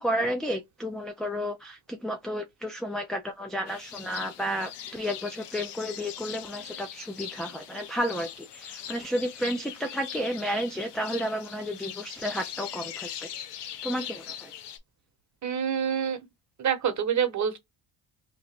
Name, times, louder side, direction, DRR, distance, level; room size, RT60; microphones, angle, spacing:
voice 1, 0.0-13.3 13.8-14.5, equal, ahead, 0.3 m, -32 dB
sound 1, 3.7-14.8, left 10 dB, 60° left, 0.8 m, -41 dB
voice 2, 15.4-16.2 16.6-17.6, right 8 dB, 35° right, 1.1 m, -26 dB
3.0 x 2.5 x 4.3 m
cardioid pair, 95°, 47 cm